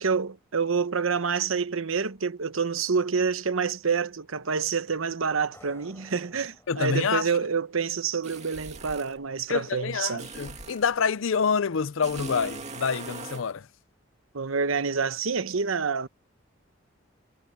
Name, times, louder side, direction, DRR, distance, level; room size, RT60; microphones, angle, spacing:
voice 1, 0.0-10.3 14.3-16.1, right 5 dB, 90° right, 1.0 m, -27 dB
sound 1, 5.5-8.8, left 1 dB, 10° left, 6.1 m, -57 dB
voice 2, 6.7-7.3 9.5-13.7, left 6 dB, 75° left, 0.5 m, -27 dB
sound 2, 8.2-9.2 10.2-10.9 12.0-13.5, right 3 dB, 35° right, 2.2 m, -40 dB
head